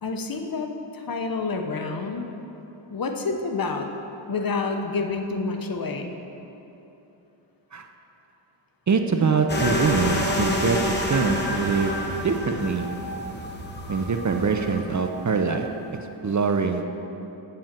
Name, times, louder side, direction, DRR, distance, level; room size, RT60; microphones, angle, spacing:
voice 1, 0.0-2.3 2.9-3.9 4.3-6.1, left 4 dB, 45° left, 4 dB, 0.9 m, -28 dB
voice 2, 8.9-11.9 12.2-12.9 13.9-15.7 16.2-17.0, right 5 dB, 40° right, 6 dB, 0.6 m, -23 dB
sound 1, 9.5-15.7, left 1 dB, 20° left, 1.2 m, -28 dB
7.8 x 7.1 x 7.4 m, 3.0 s
wide cardioid pair, 95°, 47 cm